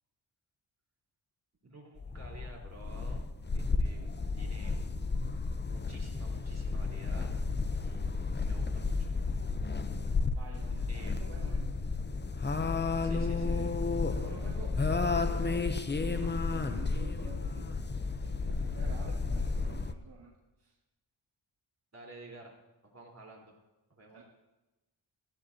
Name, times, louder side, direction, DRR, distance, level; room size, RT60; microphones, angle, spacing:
voice 1, 1.7-3.3 3.5-4.9 5.6-7.3 7.7-9.1 10.9-11.4 13.0-13.5 21.9-22.5 22.8-23.6 23.9-24.2, right 2 dB, 30° right, -2 dB, 4.1 m, -52 dB
sound 1, 2.0-19.9, left 4 dB, 20° left, 0.7 m, -32 dB
voice 2, 10.4-11.9 13.1-13.8 14.1-17.8 18.1-20.3 20.6-20.7 24.1-24.2, right 3 dB, 55° right, -3 dB, 2.1 m, -49 dB
16.0 x 14.5 x 2.8 m, 1.1 s
cardioid pair, 60°, 48 cm